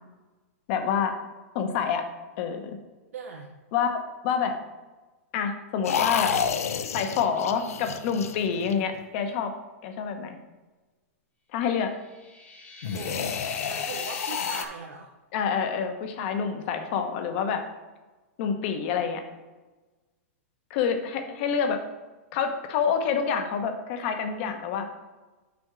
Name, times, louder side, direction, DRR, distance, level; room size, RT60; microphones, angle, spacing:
voice 1, 0.7-1.1 1.5-2.0 2.4-2.8 3.7-4.0 4.2-4.5 5.3-6.3 6.9-9.5 9.8-10.4 11.5-11.9 15.3-17.6 18.4-19.2 20.7-21.8 22.3-24.9, left 7 dB, 50° left, 6 dB, 0.9 m, -27 dB
voice 2, 3.1-3.5 12.8-13.4 13.7-15.1, right 5 dB, 85° right, 1 dB, 0.8 m, -40 dB
sound 1, 5.8-9.0 12.8-14.7, left 7 dB, 85° left, 0.5 m, -30 dB
sound 2, 11.9-14.6, left 4 dB, 20° left, 0.8 m, -42 dB
6.1 x 3.6 x 6.0 m, 1.2 s
hypercardioid pair, 145°, 8 cm